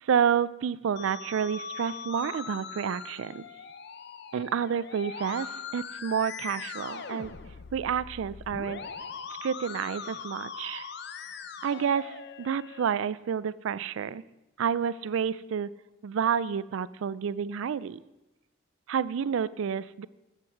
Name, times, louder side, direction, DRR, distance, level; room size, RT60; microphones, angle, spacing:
voice 1, 0.0-3.4 4.3-7.3 7.7-8.8 9.4-10.9 11.6-14.2 14.6-15.7 16.0-18.0 18.9-20.1, right 7 dB, 75° right, 18 dB, 0.3 m, -29 dB
Musical instrument, 1.0-12.9, left 5 dB, 55° left, 0.6 m, -41 dB
8.2 x 7.6 x 7.2 m, 1.0 s
head